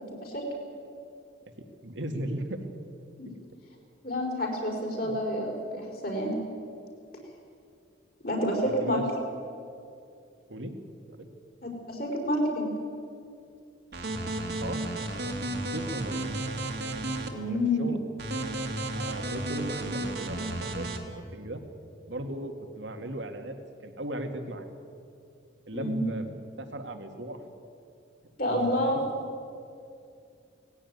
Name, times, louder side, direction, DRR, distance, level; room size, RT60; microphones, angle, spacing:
voice 1, 1.8-2.6 3.2-3.3 5.0-5.1 8.7-9.0 10.5-10.7 11.1-11.3 14.6-14.9 15.6-16.3 17.5-18.0 18.9-21.6 22.1-23.6 23.8-24.7 25.7-26.3 26.6-27.4 28.4-29.0, right 1 dB, 75° right, 6 dB, 2.1 m, -36 dB
voice 2, 4.0-6.3 8.2-9.0 11.6-12.7 17.3-18.0 25.7-26.0 28.4-29.0, left 1 dB, 50° left, 0 dB, 5.3 m, -29 dB
sound 1, 13.9-17.3 18.2-21.0, right 1 dB, 60° right, 2.2 m, -33 dB
19.0 x 16.5 x 9.5 m, 2.5 s
head